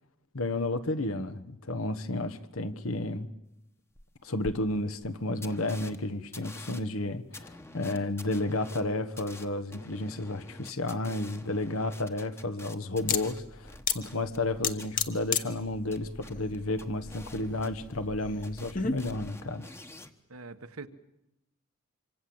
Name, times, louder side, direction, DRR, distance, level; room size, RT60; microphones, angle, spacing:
voice 1, 0.3-3.3 4.2-19.7, left 2 dB, 75° left, 1.4 m, -32 dB
sound 1, 3.9-4.0 4.4-4.5 5.0-5.1 5.4-6.0 6.3-14.5 14.8-14.9 15.6-18.2 18.4-20.1, left 1 dB, 10° left, 1.1 m, -47 dB
sound 2, 12.9-19.3, left 6 dB, 40° left, 1.3 m, -35 dB
voice 2, 20.3-20.9, right 3 dB, 85° right, 1.5 m, -43 dB
26.0 x 24.5 x 7.9 m
head